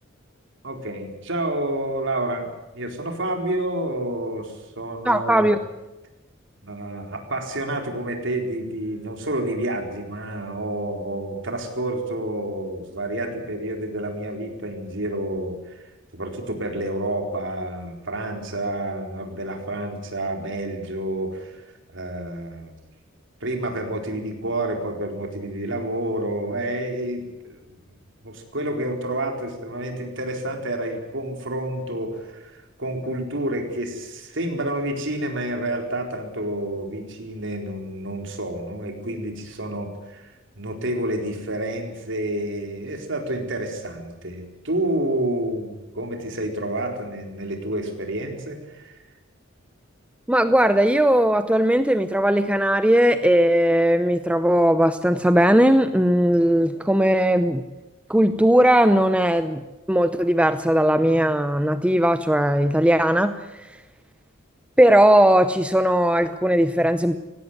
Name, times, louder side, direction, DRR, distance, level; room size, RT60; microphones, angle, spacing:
voice 1, 0.6-5.5 6.6-21.6 21.9-22.8 23.4-27.8 28.2-49.0, right 1 dB, 65° right, 3 dB, 4.3 m, -29 dB
voice 2, 5.1-5.6 50.3-57.6 58.1-59.6 59.9-63.3 64.8-67.2, equal, 5° right, 10 dB, 0.7 m, -18 dB
18.5 x 16.5 x 9.3 m, 1.0 s
head